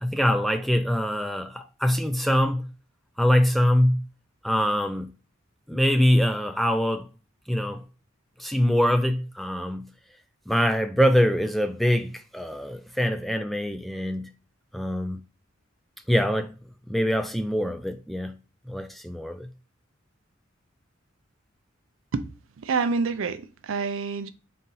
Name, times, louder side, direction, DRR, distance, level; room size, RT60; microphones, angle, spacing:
voice 1, 0.0-2.7 3.2-4.0 4.4-5.1 5.7-7.0 7.5-7.8 8.4-9.9 10.5-14.3 14.7-15.2 16.1-16.5 16.9-18.3 18.7-19.5, equal, ahead, 0.3 m, -24 dB
voice 2, 22.6-24.3, right 4 dB, 80° right, 0.4 m, -27 dB
4.1 x 2.6 x 3.8 m
head